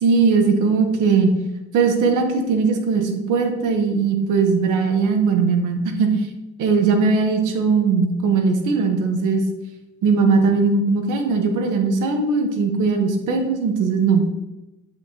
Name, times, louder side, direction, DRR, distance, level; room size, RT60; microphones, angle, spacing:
voice 1, 0.0-1.3 1.7-6.1 6.6-9.4 10.0-14.3, right 4 dB, 90° right, 5 dB, 1.2 m, -19 dB
9.7 x 5.1 x 3.0 m, 0.97 s
cardioid pair, 90°, 30 cm